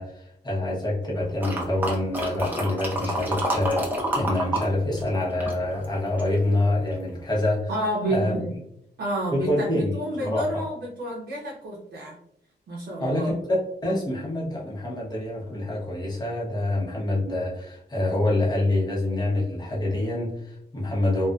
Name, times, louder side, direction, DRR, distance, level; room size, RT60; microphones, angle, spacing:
voice 1, 0.0-7.7 8.1-8.3 9.3-10.6 13.0-13.3 13.8-21.3, left 1 dB, 25° left, -5 dB, 0.9 m, -26 dB
sound 1, 1.4-4.7 4.9-6.4 6.9-7.0, right 1 dB, 10° right, 0.6 m, -28 dB
voice 2, 7.7-8.5 9.0-12.2 12.7-13.3, right 1 dB, 90° right, -3 dB, 0.5 m, -29 dB
2.5 x 2.3 x 2.2 m, 0.74 s
wide cardioid pair, 135°, 18 cm